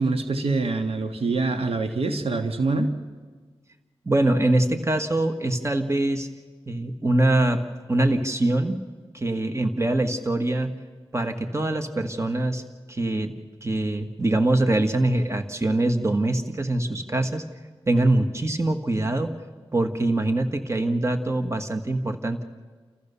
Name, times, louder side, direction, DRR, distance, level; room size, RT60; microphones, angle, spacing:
voice 1, 0.0-2.9, right 3 dB, 70° right, 6 dB, 1.6 m, -25 dB
voice 2, 4.0-6.3 6.7-7.6 7.9-8.8 9.1-10.7 11.1-12.6 12.9-13.3 13.6-17.4 17.9-19.3 19.7-22.4, right 1 dB, 25° right, 7 dB, 1.7 m, -23 dB
30.0 x 14.5 x 7.0 m, 1.4 s
cardioid pair, 60°, 10 cm